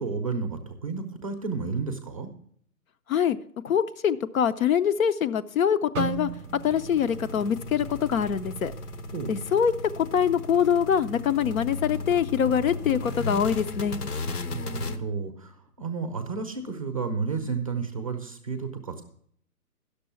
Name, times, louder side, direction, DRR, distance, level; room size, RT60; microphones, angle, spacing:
voice 1, 0.0-2.3 9.1-9.4 14.5-19.0, right 4 dB, 25° right, 7 dB, 0.5 m, -32 dB
voice 2, 3.6-6.3 6.6-8.7 9.3-14.0, left 8 dB, 65° left, 12 dB, 0.7 m, -24 dB
sound 1, 5.9-10.0 10.3-10.6 11.2-11.6, right 12 dB, 70° right, 0.5 m, -38 dB
sound 2, 6.2-15.0, left 2 dB, 85° left, 1.1 m, -36 dB
9.9 x 6.8 x 7.0 m, 0.64 s
hypercardioid pair, 165°, 45 cm